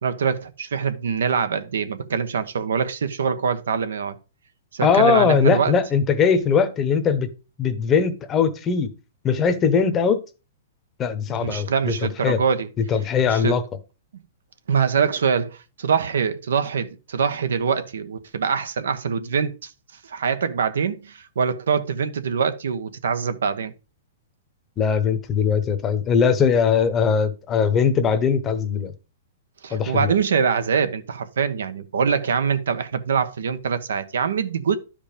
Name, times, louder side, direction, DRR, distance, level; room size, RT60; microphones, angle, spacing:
voice 1, 0.0-4.2 4.7-5.7 11.3-12.7 13.3-13.5 14.7-19.7 20.0-23.7 29.6-34.8, right 6 dB, 90° right, 1.2 m, -24 dB
voice 2, 4.8-7.3 7.6-8.9 9.2-10.2 11.0-11.9 12.2-12.4 12.9-13.6 24.8-28.9 29.7-30.1, left 6 dB, 15° left, 0.8 m, -20 dB
11.5 x 5.1 x 5.1 m
hypercardioid pair, 165°, 0 cm